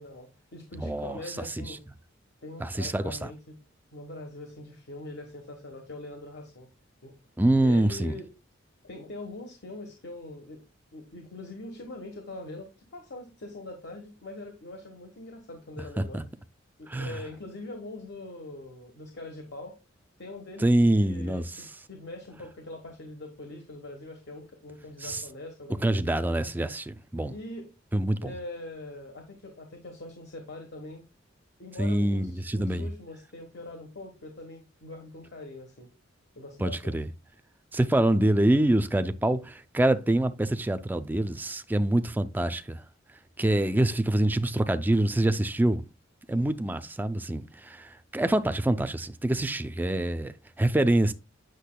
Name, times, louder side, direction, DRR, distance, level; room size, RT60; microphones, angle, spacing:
voice 1, 0.0-1.8 2.4-3.5 3.9-6.7 7.0-7.1 7.6-8.3 8.8-10.6 10.9-16.2 16.8-19.8 20.2-26.3 27.3-27.7 28.2-31.0 31.6-35.9 36.4-37.0 46.3-46.5, left 2 dB, 55° left, 1.2 m, -42 dB
voice 2, 0.8-1.8 2.6-3.3 7.4-8.1 16.0-16.2 16.9-17.2 20.6-21.4 25.0-25.2 25.8-27.3 27.9-28.3 31.8-32.9 36.6-37.1 37.7-42.8 43.4-45.9 46.3-51.1, right 1 dB, 10° right, 0.3 m, -25 dB
8.3 x 6.3 x 2.2 m
head